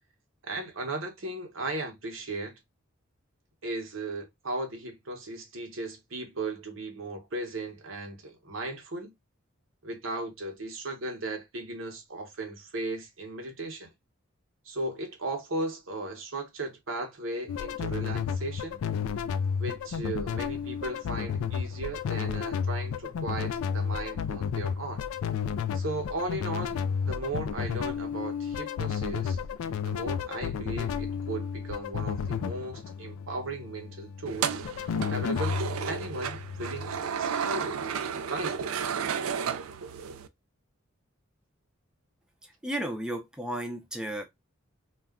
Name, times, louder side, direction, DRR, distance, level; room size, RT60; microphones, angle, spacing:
voice 1, 0.4-2.5 3.6-9.1 9.8-13.9 14.6-18.8 19.6-25.0 25.7-29.4 29.8-34.6 35.1-37.8 38.3-38.6, right 2 dB, 65° right, 0.9 m, -36 dB
sound 1, 17.5-37.0, left 7 dB, 90° left, 0.3 m, -32 dB
sound 2, 34.3-40.3, right 7 dB, 85° right, 0.4 m, -33 dB
voice 2, 42.4-44.2, right 1 dB, 5° right, 0.5 m, -34 dB
2.4 x 2.1 x 3.5 m
head